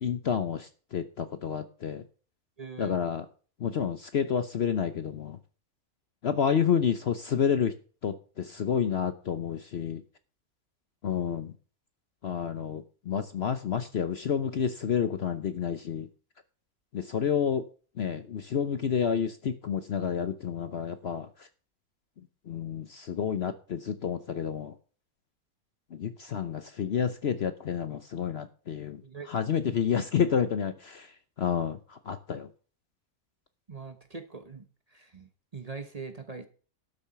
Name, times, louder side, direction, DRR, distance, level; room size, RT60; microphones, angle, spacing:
voice 1, 0.0-2.0 2.8-3.3 3.6-5.4 6.2-7.7 8.0-10.0 11.0-11.5 12.2-16.1 16.9-17.6 18.0-21.5 22.5-24.7 25.9-29.0 29.3-32.5, left 7 dB, 55° left, 10 dB, 0.8 m, -29 dB
voice 2, 2.6-3.0 29.0-29.3 29.6-29.8 33.7-34.6 34.9-36.5, right 4 dB, 30° right, 8 dB, 1.0 m, -42 dB
12.0 x 7.1 x 5.8 m, 0.39 s
omnidirectional pair, 1.5 m